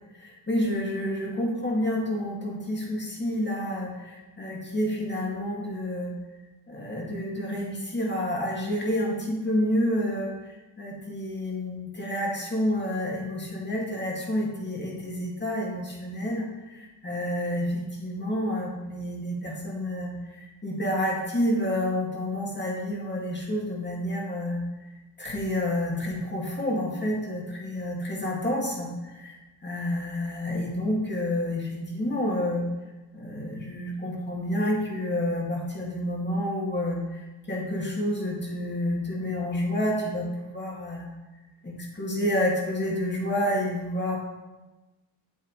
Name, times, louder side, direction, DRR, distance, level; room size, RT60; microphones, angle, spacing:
voice 1, 0.1-6.1 6.7-24.6 25.2-29.4 29.6-32.6 33.1-41.1 41.6-44.2, left 1 dB, 25° left, -2 dB, 2.3 m, -29 dB
8.8 x 7.8 x 3.2 m, 1.1 s
cardioid pair, 120°, 46 cm